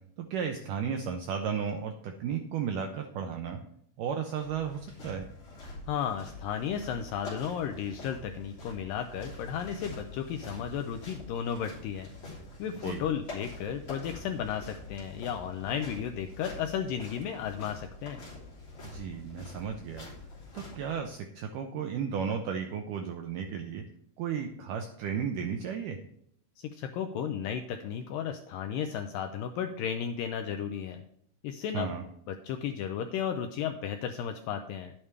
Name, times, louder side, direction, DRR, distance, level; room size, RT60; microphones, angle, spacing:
voice 1, 0.2-3.6 4.0-5.3 12.8-13.0 18.8-20.1 20.5-23.8 24.2-26.0 31.7-32.1, right 7 dB, 80° right, 5 dB, 1.9 m, -34 dB
sound 1, 4.3-21.0, left 2 dB, 35° left, 3.9 m, -45 dB
voice 2, 5.9-12.1 12.6-18.2 26.6-31.0 31.4-31.9 32.3-34.9, left 8 dB, 85° left, 7 dB, 2.0 m, -34 dB
11.0 x 8.8 x 3.3 m, 0.69 s
omnidirectional pair, 4.5 m